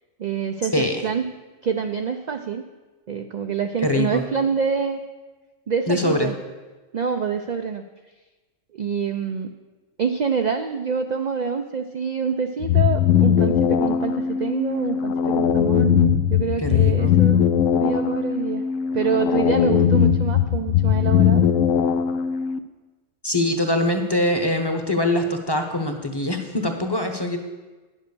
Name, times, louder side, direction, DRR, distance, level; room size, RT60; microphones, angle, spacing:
voice 1, 0.2-1.2 1.6-2.6 3.1-5.0 5.7-6.4 6.9-7.8 8.7-9.5 10.0-16.0 16.3-17.4 17.8-18.6 18.9-21.5, right 6 dB, 60° right, 6 dB, 0.4 m, -26 dB
voice 2, 3.8-4.2 5.9-6.3 16.6-17.1 23.2-27.4, left 1 dB, 20° left, 5 dB, 0.9 m, -23 dB
sound 1, 12.6-22.6, left 8 dB, 85° left, 1.0 m, -20 dB
10.0 x 7.3 x 6.8 m, 1.2 s
omnidirectional pair, 1.3 m